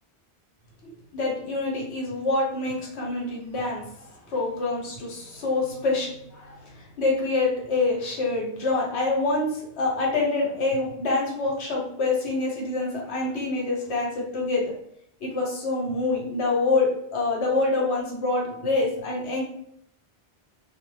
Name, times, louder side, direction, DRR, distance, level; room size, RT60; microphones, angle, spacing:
voice 1, 0.8-14.7 15.2-19.4, left 3 dB, 80° left, -2 dB, 1.0 m, -26 dB
2.0 x 2.0 x 3.1 m, 0.72 s
omnidirectional pair, 1.1 m